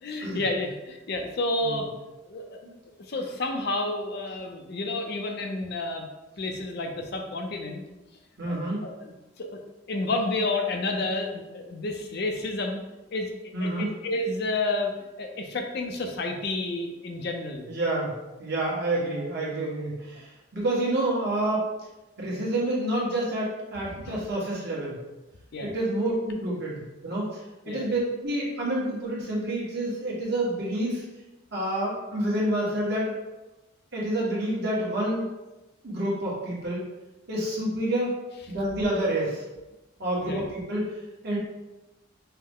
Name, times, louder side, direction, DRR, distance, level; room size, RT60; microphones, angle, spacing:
voice 1, 0.0-1.9 2.3-2.6 3.1-6.1 6.4-7.8 8.5-8.6 8.8-9.6 9.9-12.8 13.1-13.3 13.6-17.7 18.7-19.2 23.8-24.2 25.5-25.7 27.7-27.9 40.2-40.5, left 2 dB, 50° left, 3 dB, 0.5 m, -30 dB
voice 2, 8.4-8.8 13.5-13.9 17.7-18.1 18.4-20.2 20.5-21.6 22.2-24.9 25.6-27.3 27.6-31.0 31.5-33.1 33.9-35.3 35.8-36.8 37.3-38.1 38.5-39.4 40.0-40.8 41.2-41.4, right 1 dB, 55° right, -6 dB, 1.4 m, -28 dB
5.5 x 2.1 x 3.6 m, 1.0 s
head